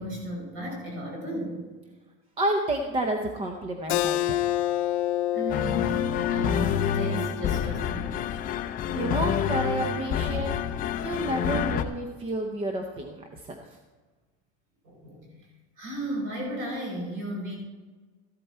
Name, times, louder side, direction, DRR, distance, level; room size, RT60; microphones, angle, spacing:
voice 1, 0.0-1.6 5.3-6.0 6.3-8.2 14.8-15.4 15.8-17.6, equal, 40° right, -1 dB, 5.0 m, -34 dB
voice 2, 2.4-4.5 8.9-10.5 11.0-13.6, right 1 dB, 15° right, 3 dB, 0.7 m, -30 dB
Keyboard (musical), 3.9-9.1, left 13 dB, 70° left, 0.7 m, -29 dB
sound 1, 5.5-11.8, left 9 dB, 25° left, 0.5 m, -28 dB
14.0 x 11.5 x 4.4 m, 1.3 s
cardioid pair, 175°, 32 cm